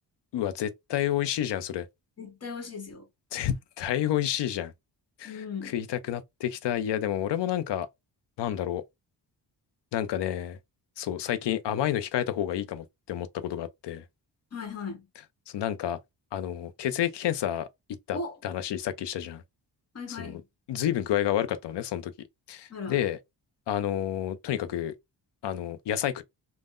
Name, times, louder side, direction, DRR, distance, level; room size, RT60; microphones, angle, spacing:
voice 1, 0.3-1.9 3.3-4.7 5.2-7.9 8.4-8.8 9.9-10.6 11.0-14.0 15.5-16.0 16.3-17.7 18.1-19.4 20.1-20.4 20.7-22.1 22.5-23.2 23.7-24.9 25.4-26.2, left 11 dB, 75° left, 0.5 m, -30 dB
voice 2, 2.2-3.0 5.2-5.7 14.5-15.0 18.1-18.3 19.9-20.4 22.7-23.0, left 4 dB, 35° left, 1.0 m, -37 dB
3.6 x 2.0 x 2.4 m
wide cardioid pair, 155°, 42 cm